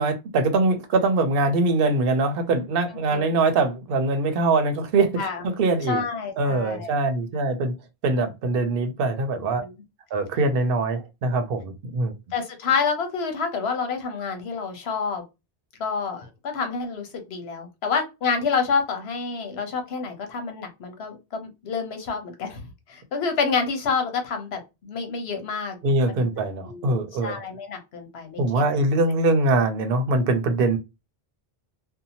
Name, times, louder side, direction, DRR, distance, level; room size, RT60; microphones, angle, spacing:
voice 1, 0.0-6.0 6.4-7.7 8.0-9.6 10.1-12.1 25.8-27.4 28.4-30.8, right 3 dB, 70° right, 0.8 m, -23 dB
voice 2, 5.9-6.9 9.6-9.7 12.3-15.2 15.8-22.6 22.9-25.8 26.1-26.2 26.7-26.9 27.2-28.6, left 5 dB, 85° left, 1.0 m, -28 dB
2.7 x 2.1 x 2.7 m
omnidirectional pair, 1.0 m